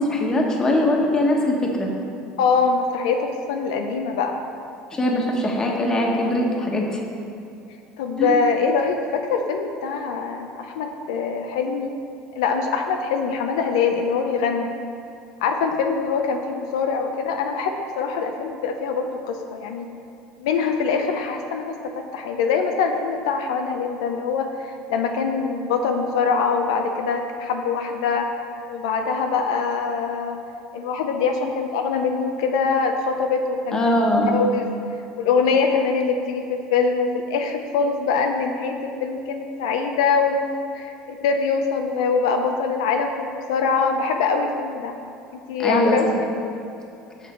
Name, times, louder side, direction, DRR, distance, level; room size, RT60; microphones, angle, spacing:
voice 1, 0.0-1.9 4.9-6.8 8.2-8.4 33.7-34.4 45.6-46.2, left 1 dB, 25° left, 0 dB, 1.2 m, -21 dB
voice 2, 2.4-4.4 8.0-11.9 12.4-14.7 15.4-19.9 20.4-28.3 28.7-30.4 30.7-33.8 34.3-34.7 35.2-44.9 45.3-46.3, left 5 dB, 90° left, 4 dB, 0.5 m, -23 dB
6.5 x 6.0 x 4.4 m, 2.7 s
supercardioid pair, 100°, 3 cm